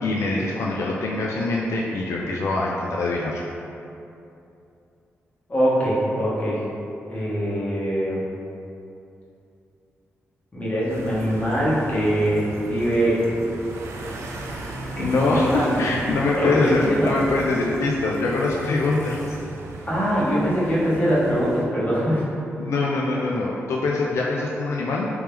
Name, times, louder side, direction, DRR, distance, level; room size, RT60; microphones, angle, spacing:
voice 1, 0.0-3.4 15.0-19.2 22.6-25.1, left 2 dB, 75° left, -3 dB, 0.3 m, -24 dB
voice 2, 5.5-6.6 7.1-8.2 10.5-13.2 14.9-15.7 16.4-17.1 19.9-22.2, equal, 30° left, -8 dB, 1.2 m, -22 dB
sound 1, 10.9-21.6, right 2 dB, 80° right, 0.4 m, -36 dB
3.3 x 3.0 x 3.4 m, 2.7 s
cardioid pair, 85°, 5 cm